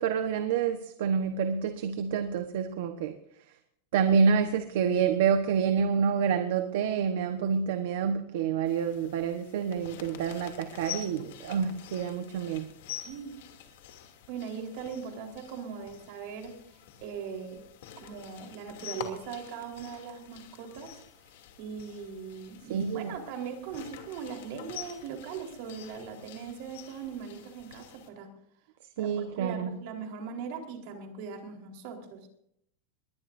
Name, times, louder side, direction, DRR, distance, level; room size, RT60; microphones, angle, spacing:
voice 1, 0.0-3.1 3.9-12.7 22.7-23.1 29.0-29.7, right 6 dB, 60° right, 7 dB, 1.2 m, -28 dB
sound 1, 8.7-28.1, left 10 dB, 65° left, 2.8 m, -47 dB
voice 2, 13.0-13.4 14.3-16.5 17.0-17.6 18.0-21.0 21.6-28.3 29.0-32.3, right 6 dB, 45° right, 2 dB, 4.1 m, -40 dB
22.0 x 20.0 x 2.7 m, 0.72 s
supercardioid pair, 175°, 0 cm